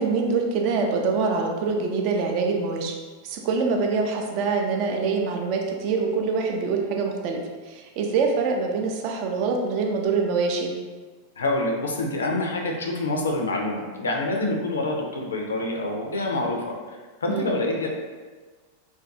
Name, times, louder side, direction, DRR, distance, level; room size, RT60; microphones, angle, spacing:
voice 1, 0.0-2.9 3.2-7.4 7.7-10.7 17.3-17.5, right 4 dB, 45° right, 1 dB, 0.3 m, -25 dB
voice 2, 11.4-17.9, left 2 dB, 70° left, 1 dB, 0.4 m, -27 dB
2.3 x 2.2 x 2.6 m, 1.4 s
figure-of-eight pair, 90°, 0 cm